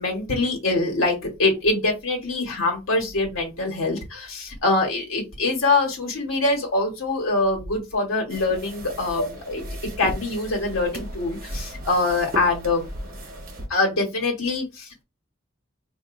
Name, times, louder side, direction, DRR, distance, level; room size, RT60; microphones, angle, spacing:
voice 1, 0.0-9.6 10.0-12.9 13.7-15.0, left 2 dB, 85° left, 1 dB, 1.3 m, -24 dB
sound 1, 8.3-13.7, equal, 45° right, 1.0 m, -36 dB
4.6 x 2.6 x 2.5 m, 0.25 s
head